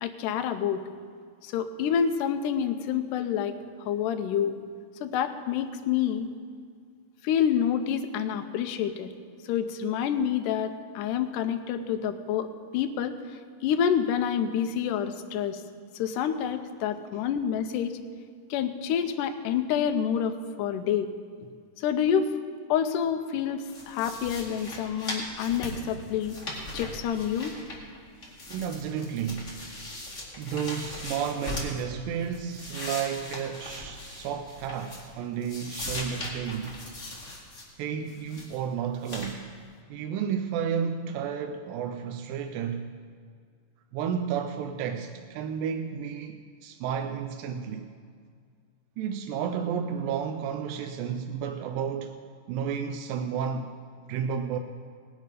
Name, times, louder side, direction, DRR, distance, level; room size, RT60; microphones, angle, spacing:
voice 1, 0.0-0.8 1.4-4.6 5.0-6.3 7.2-9.1 9.5-13.2 13.6-15.6 15.9-17.9 18.5-21.1 21.8-22.3 22.7-26.4 26.7-27.5, left 8 dB, 80° left, 7 dB, 2.2 m, -28 dB
sound 1, 23.7-28.0 28.2-31.8 32.2-35.2 35.4-37.7 38.1-38.6 39.0-39.3, left 1 dB, 25° left, 1.9 m, -39 dB
voice 2, 28.5-29.6 30.4-36.8 37.8-39.5 39.9-43.0 43.9-47.9 49.0-52.2 52.5-53.7 54.1-54.6, right 7 dB, 85° right, 6 dB, 2.3 m, -32 dB
18.5 x 9.0 x 5.0 m, 2.1 s
omnidirectional pair, 4.0 m